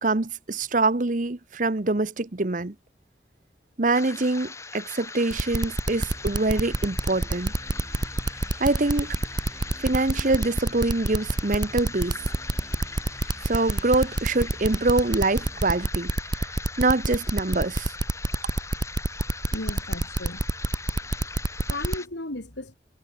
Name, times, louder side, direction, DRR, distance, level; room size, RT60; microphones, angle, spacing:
voice 1, 0.0-2.7 3.8-7.5 8.6-9.2 9.8-12.2 13.4-16.1 16.4-16.5 16.8-17.9, right 2 dB, 45° right, 1.0 m, -24 dB
sound 1, 3.9-22.1, left 3 dB, 15° left, 1.5 m, -41 dB
sound 2, 5.3-22.0, right 2 dB, 25° right, 0.6 m, -26 dB
sound 3, 5.9-15.9, equal, 5° right, 2.7 m, -46 dB
voice 2, 19.5-20.5 21.1-22.7, left 2 dB, 90° left, 3.2 m, -36 dB
head